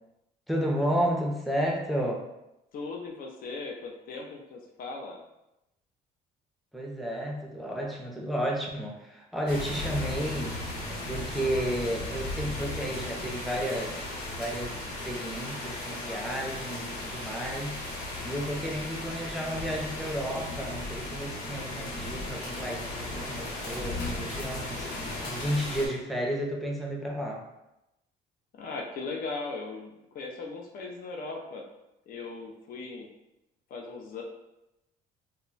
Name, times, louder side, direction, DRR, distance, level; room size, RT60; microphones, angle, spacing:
voice 1, 0.5-2.3 6.7-10.6 11.0-14.0 14.3-17.8 18.2-24.9 25.3-27.5, equal, ahead, -1 dB, 0.5 m, -32 dB
voice 2, 2.7-5.2 28.6-31.6 32.1-33.1 33.7-34.2, left 3 dB, 60° left, 1 dB, 0.5 m, -38 dB
sound 1, 9.5-25.9, left 2 dB, 80° left, 0.9 m, -36 dB
2.2 x 2.1 x 3.8 m, 0.90 s
cardioid pair, 110°, 17 cm